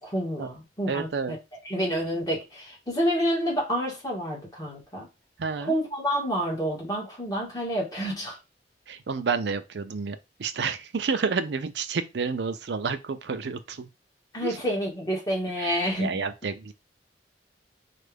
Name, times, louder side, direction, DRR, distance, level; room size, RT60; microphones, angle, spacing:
voice 1, 0.0-1.4 1.6-5.1 5.7-8.4 14.3-16.1, equal, 20° left, 1.7 m, -28 dB
voice 2, 0.9-1.3 5.4-5.8 8.9-13.9 14.4-14.6 15.6-16.7, right 5 dB, 75° right, 0.5 m, -30 dB
4.4 x 2.5 x 3.4 m
head